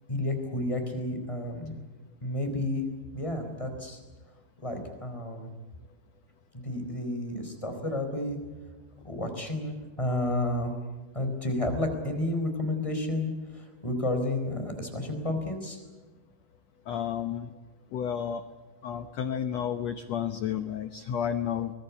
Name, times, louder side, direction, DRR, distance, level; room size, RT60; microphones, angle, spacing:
voice 1, 0.1-1.8 2.2-2.9 3.1-4.0 4.6-5.5 6.6-8.4 9.0-10.7 11.1-15.8, left 1 dB, 10° left, 4 dB, 4.2 m, -31 dB
voice 2, 16.9-17.5 17.9-18.4 18.8-21.7, left 8 dB, 80° left, 10 dB, 1.5 m, -31 dB
24.5 x 20.5 x 8.6 m, 1.3 s
omnidirectional pair, 4.4 m